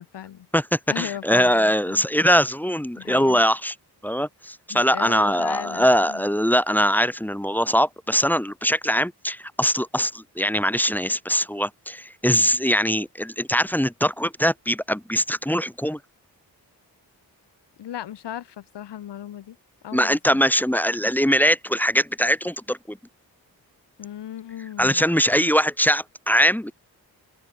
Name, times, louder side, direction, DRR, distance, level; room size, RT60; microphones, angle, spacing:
voice 1, 0.0-0.5 0.9-2.1 3.0-3.4 4.7-6.3 17.8-19.6 19.8-20.4 24.0-25.1, left 11 dB, 90° left, 2.0 m, -36 dB
voice 2, 0.5-3.7 4.0-16.0 19.9-23.0 24.8-26.7, equal, 5° left, 0.8 m, -22 dB
open air
cardioid pair, 50°, 40 cm